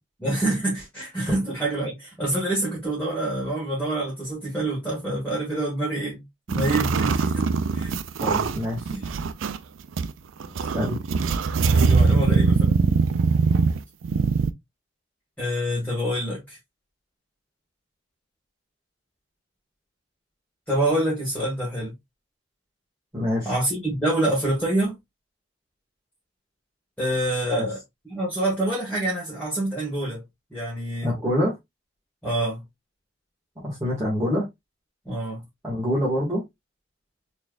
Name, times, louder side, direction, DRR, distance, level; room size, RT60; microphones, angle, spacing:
voice 1, 0.2-7.9 8.9-9.1 11.7-12.8 15.4-16.6 20.7-21.9 23.5-25.0 27.0-27.8 28.1-30.2 30.5-31.1 32.2-32.6 35.1-35.4, right 1 dB, 10° left, 1.7 m, -26 dB
sound 1, 6.5-9.6 10.0-10.1 10.4-14.5, right 4 dB, 85° right, 0.4 m, -22 dB
voice 2, 8.2-8.9 10.6-11.0 23.1-23.6 27.5-27.7 31.0-31.6 33.6-34.4 35.6-36.4, equal, 15° right, 1.6 m, -26 dB
4.3 x 3.4 x 2.3 m
head